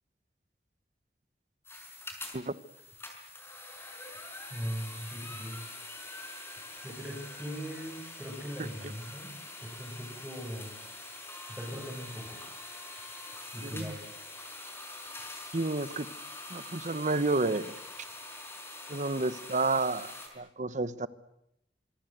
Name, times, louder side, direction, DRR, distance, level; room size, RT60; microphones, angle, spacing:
sound 1, 1.6-20.3, left 2 dB, 15° left, 5.3 m, -45 dB
voice 1, 4.5-5.6 6.8-9.3 9.6-10.8 11.4-12.4 13.5-14.0 19.8-19.9, equal, 10° right, -6 dB, 7.9 m, -40 dB
voice 2, 15.5-16.1 16.5-17.7 18.9-21.1, right 3 dB, 45° right, 15 dB, 1.1 m, -30 dB
26.0 x 23.0 x 8.1 m, 0.79 s
head